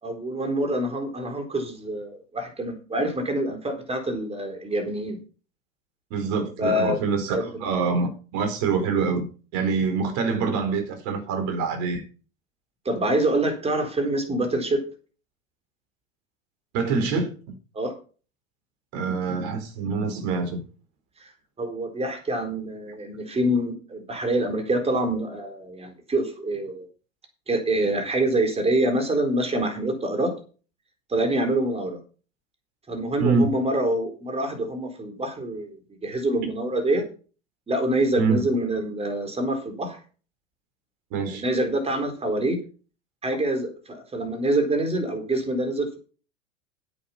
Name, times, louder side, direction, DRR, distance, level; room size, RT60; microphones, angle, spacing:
voice 1, 0.0-5.2 6.6-7.0 7.3-7.7 12.8-14.8 17.7-17.9 21.2-21.3 21.6-26.9 27.5-30.3 31.1-32.0 32.9-37.0 37.7-40.0 41.3-42.6 43.2-46.0, right 1 dB, 15° right, 4.1 m, -26 dB
voice 2, 6.1-9.3 9.5-12.0 16.7-17.3 18.9-20.6 33.2-33.5 38.2-38.4 41.1-41.4, right 4 dB, 45° right, 4.4 m, -25 dB
10.0 x 8.6 x 6.0 m
hypercardioid pair, 95°, 39 cm